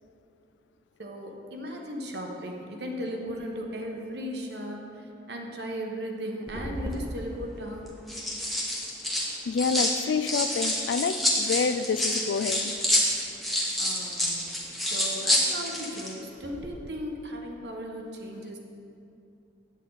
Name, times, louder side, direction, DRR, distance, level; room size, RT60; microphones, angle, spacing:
voice 1, 1.0-7.9 13.8-18.6, equal, 65° right, 1 dB, 1.0 m, -37 dB
sound 1, 6.5-7.0 7.9-10.0 10.2-16.1 16.4-16.7, left 1 dB, ahead, 0.9 m, -28 dB
voice 2, 9.5-12.7 13.6-13.7, left 5 dB, 75° left, 13 dB, 0.3 m, -28 dB
8.4 x 8.2 x 3.9 m, 2.6 s
head